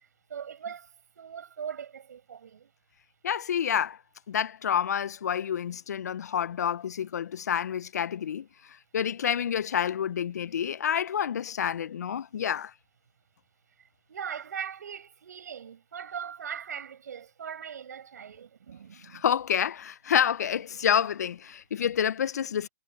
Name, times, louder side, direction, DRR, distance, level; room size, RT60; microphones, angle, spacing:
voice 1, 0.3-0.9 1.2-2.7 14.1-19.3, right 8 dB, 65° right, 7.2 m, -40 dB
voice 2, 3.2-4.0 4.3-8.5 8.9-12.7 19.1-22.7, left 8 dB, 60° left, 1.2 m, -28 dB
figure-of-eight pair, 130°, 10 cm